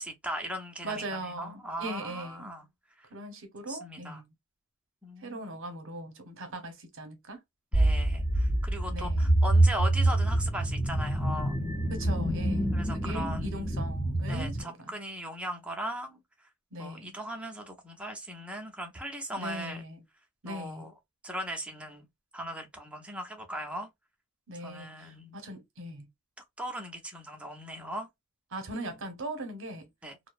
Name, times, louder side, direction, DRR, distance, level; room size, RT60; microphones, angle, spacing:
voice 1, 0.0-2.6 3.0-3.1 3.7-4.2 5.0-5.6 7.7-11.6 12.7-13.6 14.3-16.5 16.8-19.9 20.5-20.9 21.2-22.1 22.3-23.9 24.6-25.4 26.6-28.1 30.0-30.2, right 1 dB, 5° right, 0.5 m, -38 dB
voice 2, 0.8-2.5 3.1-4.3 5.2-7.4 8.9-9.4 11.9-12.7 13.0-14.9 16.7-17.2 19.4-20.0 20.4-20.9 24.5-26.1 28.5-29.9, right 1 dB, 60° right, 0.8 m, -40 dB
sound 1, 7.7-14.6, right 1 dB, 35° left, 0.7 m, -26 dB
2.6 x 2.0 x 2.3 m
head